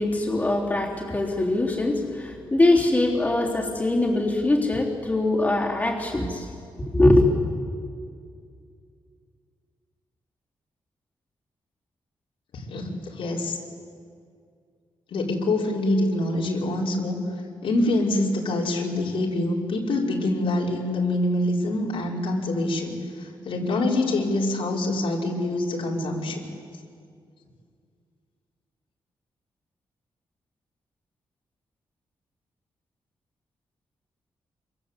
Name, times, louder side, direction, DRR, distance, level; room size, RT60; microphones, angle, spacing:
voice 1, 0.0-6.5 6.8-7.3, left 2 dB, 15° left, -3 dB, 3.6 m, -22 dB
voice 2, 12.5-13.6 15.1-17.2 17.6-26.5, left 2 dB, 80° left, -2 dB, 5.2 m, -25 dB
26.5 x 26.0 x 8.4 m, 2.3 s
wide cardioid pair, 170°, 9 cm